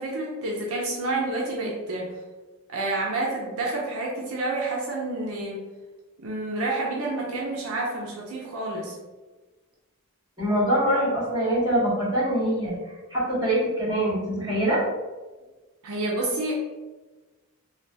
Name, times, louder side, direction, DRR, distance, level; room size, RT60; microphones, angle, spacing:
voice 1, 0.0-2.2 2.7-5.6 6.2-9.0 15.8-16.5, right 2 dB, 70° right, -3 dB, 0.5 m, -29 dB
voice 2, 10.4-12.8 13.1-14.8, right 1 dB, 20° right, -10 dB, 1.5 m, -24 dB
3.4 x 2.2 x 2.6 m, 1.2 s
head